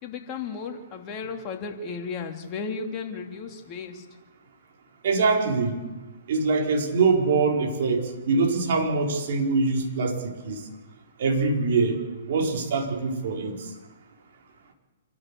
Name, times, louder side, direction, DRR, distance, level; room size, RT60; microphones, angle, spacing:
voice 1, 0.0-4.0, left 5 dB, 30° left, 2 dB, 2.9 m, -34 dB
voice 2, 5.0-5.8 6.3-10.6 11.2-12.0 12.3-13.5, right 4 dB, 55° right, 0 dB, 4.7 m, -23 dB
27.5 x 11.5 x 8.5 m, 1.2 s
figure-of-eight pair, 120°, 0 cm